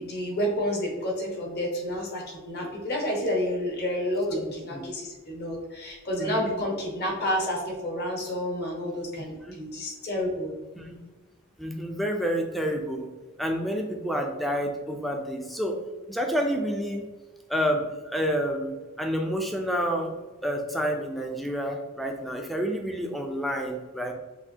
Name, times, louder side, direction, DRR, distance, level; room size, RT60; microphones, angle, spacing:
voice 1, 0.0-10.5, equal, 45° left, -1 dB, 1.2 m, -30 dB
voice 2, 6.2-6.5 9.4-9.6 10.8-11.0 11.6-13.1 13.4-15.8 16.1-17.0 17.5-20.2 20.4-24.1, equal, ahead, 2 dB, 0.4 m, -29 dB
6.5 x 2.7 x 2.7 m, 1.2 s
head